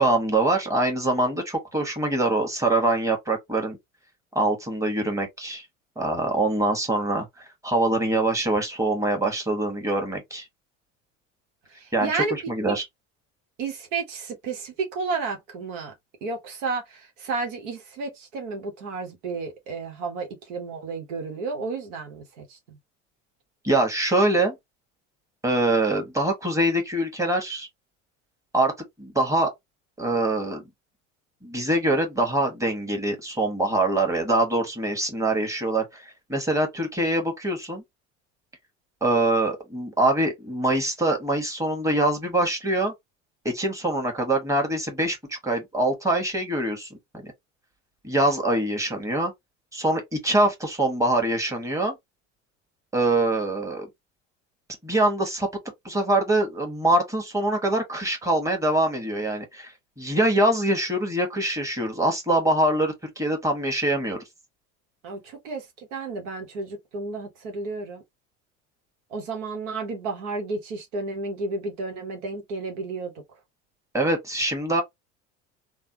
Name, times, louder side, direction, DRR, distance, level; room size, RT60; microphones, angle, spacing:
voice 1, 0.0-3.8 4.3-5.7 6.0-10.5 11.9-12.8 23.6-24.6 25.4-27.7 28.5-28.7 29.0-29.5 30.0-30.6 31.4-37.8 39.0-42.9 43.4-47.3 48.0-49.3 49.7-52.0 52.9-53.9 54.8-55.5 55.8-64.2 73.9-74.8, right 2 dB, 10° right, 1.4 m, -24 dB
voice 2, 11.7-12.3 12.6-12.8 13.6-15.9 16.2-22.8 65.0-68.0 69.1-73.2, right 4 dB, 75° right, 1.1 m, -32 dB
3.3 x 2.2 x 2.7 m
hypercardioid pair, 70°, 38 cm